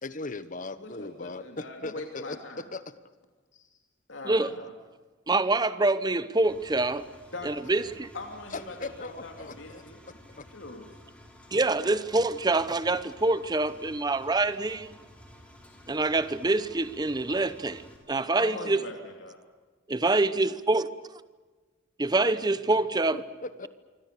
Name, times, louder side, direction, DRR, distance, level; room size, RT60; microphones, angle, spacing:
voice 1, 0.0-2.8 8.5-9.8 10.3-10.5 23.1-23.7, left 3 dB, 45° left, 1.3 m, -38 dB
voice 2, 0.8-2.7 3.5-3.7 4.1-4.7 7.3-10.0 10.5-10.9 18.3-19.4, left 2 dB, 75° left, 2.8 m, -42 dB
voice 3, 5.3-7.1 7.4-7.8 11.5-15.0 15.9-18.8 19.9-20.9 22.0-23.2, right 2 dB, 20° right, 0.8 m, -25 dB
Engine, 6.4-18.0, left 1 dB, 5° left, 5.0 m, -52 dB
26.0 x 25.0 x 6.8 m
head